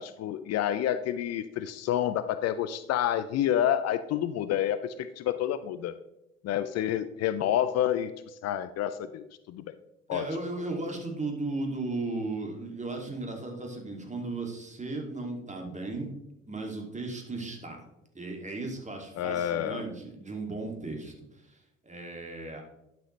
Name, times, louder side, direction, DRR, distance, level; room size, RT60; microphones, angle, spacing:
voice 1, 0.0-6.0 6.4-9.8 10.1-10.3 19.2-19.8, left 11 dB, 55° left, 13 dB, 0.5 m, -29 dB
voice 2, 10.1-16.1 16.5-17.8 18.1-21.1 21.5-22.6, right 2 dB, 20° right, 2 dB, 2.5 m, -36 dB
11.5 x 5.9 x 3.2 m, 0.86 s
hypercardioid pair, 50°, 31 cm